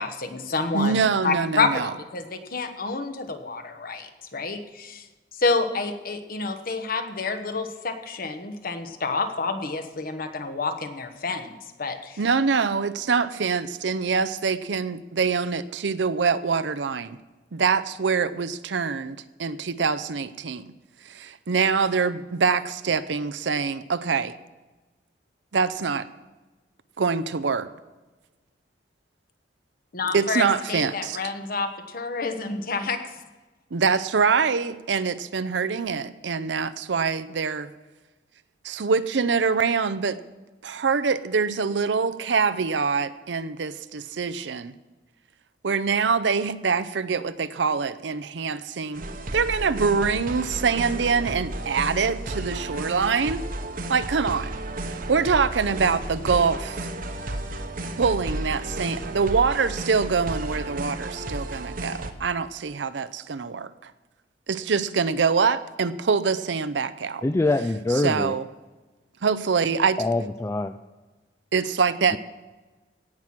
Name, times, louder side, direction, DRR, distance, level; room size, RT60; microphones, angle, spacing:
voice 1, 0.0-5.1 5.3-12.2 29.9-33.0, left 3 dB, 55° left, 8 dB, 1.2 m, -28 dB
voice 2, 0.7-1.9 12.2-17.2 17.5-20.7 21.0-24.3 25.5-26.1 27.0-27.7 30.1-31.2 33.7-37.7 38.6-40.2 40.6-44.7 45.6-49.1 49.3-53.4 53.9-54.5 54.9-56.9 58.0-63.9 64.5-67.2 68.0-68.4 69.2-70.0 71.5-72.2, right 5 dB, 85° right, 14 dB, 0.6 m, -24 dB
sound 1, 48.9-62.1, right 1 dB, 50° right, 1.0 m, -33 dB
voice 3, 67.2-68.4 70.0-70.8, left 2 dB, 15° left, 9 dB, 0.3 m, -24 dB
17.0 x 6.1 x 7.4 m, 1.2 s
head